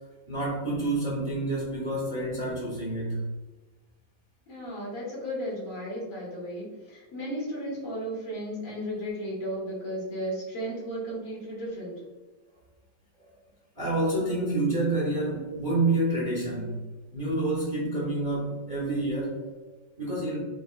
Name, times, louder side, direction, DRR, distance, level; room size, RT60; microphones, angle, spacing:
voice 1, 0.3-3.2 13.2-13.3 13.7-16.7 17.1-20.4, right 2 dB, 30° right, -5 dB, 1.0 m, -28 dB
voice 2, 4.5-11.9, equal, 70° left, -6 dB, 2.3 m, -34 dB
5.1 x 2.9 x 2.2 m, 1.2 s
omnidirectional pair, 2.2 m